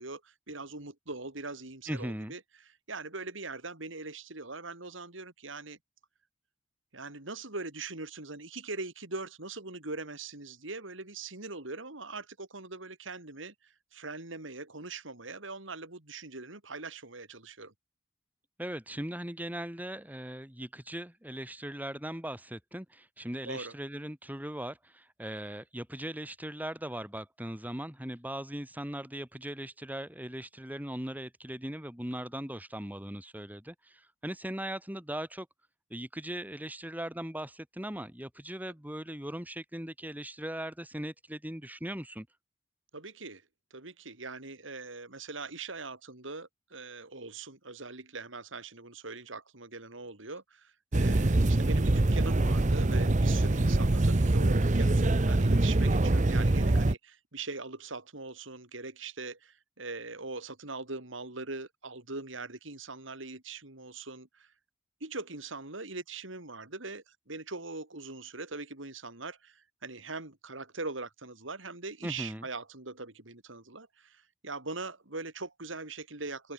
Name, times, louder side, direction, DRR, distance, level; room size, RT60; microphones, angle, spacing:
voice 1, 0.0-2.4 2.9-5.8 6.9-17.7 23.5-23.7 42.9-43.4 43.7-64.5 65.0-76.5, right 3 dB, 70° right, 3.7 m, -41 dB
voice 2, 1.9-2.3 18.6-35.5 35.9-42.3 72.0-72.4, right 1 dB, 10° right, 3.5 m, -39 dB
sound 1, 50.9-56.9, right 2 dB, 40° right, 0.8 m, -24 dB
head